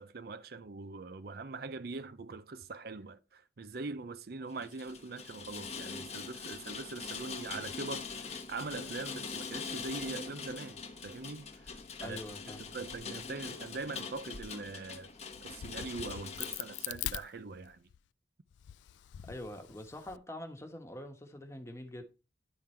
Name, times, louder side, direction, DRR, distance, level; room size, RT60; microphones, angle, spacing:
voice 1, 0.0-11.7 12.0-12.2 12.6-15.1 15.4-17.8, right 3 dB, 60° right, 0.6 m, -42 dB
Rain, 4.5-16.9, left 5 dB, 35° left, 1.0 m, -43 dB
voice 2, 12.0-12.7 19.3-22.0, left 1 dB, 15° left, 1.2 m, -44 dB
Crack, 15.3-18.0 18.5-20.2, left 13 dB, 85° left, 0.3 m, -42 dB
11.0 x 3.8 x 4.3 m
head